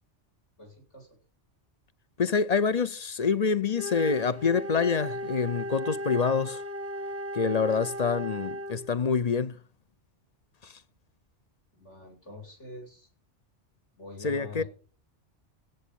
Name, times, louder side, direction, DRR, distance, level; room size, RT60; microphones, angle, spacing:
voice 1, 0.6-1.2 11.7-13.1 13.9-14.7, left 2 dB, 75° left, 8.0 m, -45 dB
voice 2, 2.2-6.6 7.3-9.6 10.6-10.8 14.2-14.6, left 5 dB, 40° left, 0.7 m, -26 dB
Wind instrument woodwind instrument, 3.7-8.9, equal, 15° right, 0.8 m, -36 dB
17.0 x 8.3 x 6.9 m
omnidirectional pair, 1.2 m